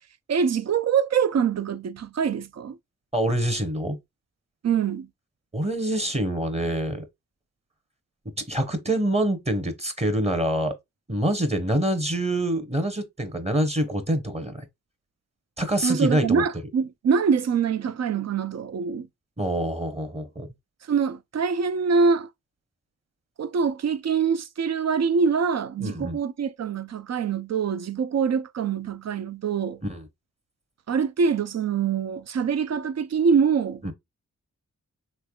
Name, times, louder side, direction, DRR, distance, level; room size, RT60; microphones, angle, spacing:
voice 1, 0.3-2.8 4.6-5.1 15.8-19.1 20.8-22.3 23.4-29.8 30.9-33.8, right 6 dB, 55° right, 0.5 m, -24 dB
voice 2, 3.1-4.0 5.5-7.1 8.5-10.7 11.1-14.7 15.6-16.4 19.4-20.5 25.8-26.2 29.8-30.0 33.8-33.9, right 1 dB, 20° right, 0.9 m, -25 dB
3.3 x 3.2 x 2.2 m
cardioid pair, 50°, 32 cm